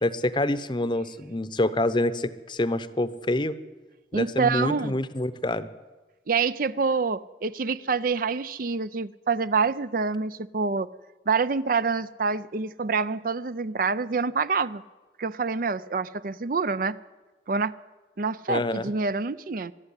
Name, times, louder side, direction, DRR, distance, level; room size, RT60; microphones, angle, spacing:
voice 1, 0.0-3.5 4.1-5.7 18.5-18.9, left 1 dB, 25° left, 14 dB, 0.8 m, -26 dB
voice 2, 4.1-4.9 6.3-10.9 11.3-14.8 15.2-17.0 17.5-17.7 18.2-19.7, right 4 dB, 50° right, 15 dB, 0.5 m, -26 dB
21.5 x 12.5 x 9.8 m, 1.3 s
head